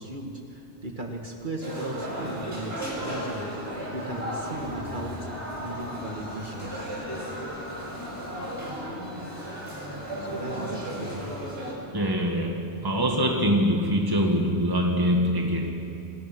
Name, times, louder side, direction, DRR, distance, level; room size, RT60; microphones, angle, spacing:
voice 1, 0.0-3.5 3.9-5.3 5.6-7.1 10.2-11.4, right 2 dB, 45° right, 2 dB, 2.4 m, -37 dB
sound 1, 1.6-11.7, equal, 60° right, 7.7 m, -35 dB
sound 2, 2.8-10.7, equal, 80° left, 5.3 m, -42 dB
voice 2, 11.9-15.9, equal, 20° right, 1 dB, 2.0 m, -24 dB
28.0 x 23.5 x 6.3 m, 2.8 s
omnidirectional pair, 1.2 m